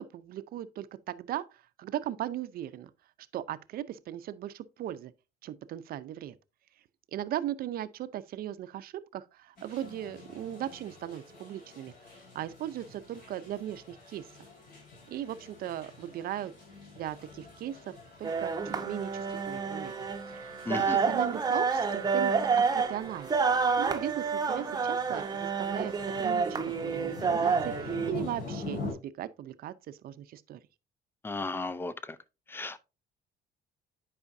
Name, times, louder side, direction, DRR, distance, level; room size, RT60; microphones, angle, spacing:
voice 1, 0.0-2.9 3.3-5.1 5.4-6.3 7.1-11.9 12.3-14.3 15.1-16.5 17.0-19.9 20.3-30.6, right 12 dB, 60° right, 0.6 m, -38 dB
sound 1, 9.6-28.9, left 3 dB, 55° left, 4.5 m, -46 dB
sound 2, 18.2-28.1, right 5 dB, 25° right, 0.8 m, -29 dB
voice 2, 20.7-21.0 31.2-32.2 32.5-32.8, left 3 dB, 15° left, 0.5 m, -35 dB
9.7 x 4.9 x 2.6 m
cardioid pair, 110°, 17 cm